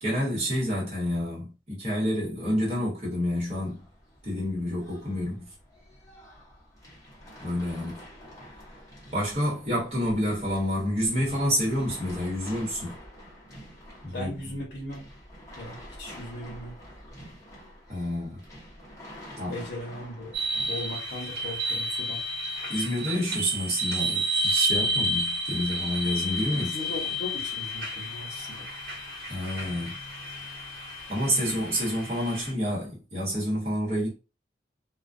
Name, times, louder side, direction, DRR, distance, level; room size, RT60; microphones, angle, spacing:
voice 1, 0.0-3.8 4.2-5.4 7.4-8.0 9.1-12.9 14.0-14.3 17.9-18.4 19.4-19.5 22.7-26.7 29.3-29.9 31.1-34.1, equal, 35° right, 1.0 m, -28 dB
sound 1, 3.2-21.0, equal, 20° left, 0.8 m, -48 dB
voice 2, 14.0-15.0 15.5-16.7 19.2-20.3 20.6-22.2 26.5-28.7, left 1 dB, 65° left, 0.8 m, -38 dB
sound 2, 20.3-32.5, right 1 dB, 60° right, 1.1 m, -31 dB
2.3 x 2.1 x 2.5 m
head